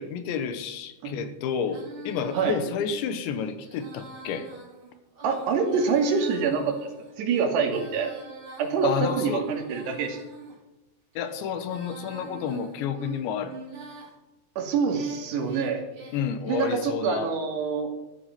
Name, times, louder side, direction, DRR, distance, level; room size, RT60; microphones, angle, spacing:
voice 1, 0.0-4.5 8.8-9.5 11.2-13.6 16.1-17.3, left 7 dB, 80° left, 10 dB, 3.5 m, -30 dB
Female singing, 1.6-10.6 11.1-14.1 14.6-16.9, right 2 dB, 30° right, 4.0 m, -44 dB
voice 2, 5.2-6.9 7.2-8.1 8.6-10.2 14.6-15.8 16.5-17.9, right 5 dB, 70° right, 3 dB, 4.4 m, -26 dB
14.5 x 13.0 x 6.0 m, 1.0 s
omnidirectional pair, 5.1 m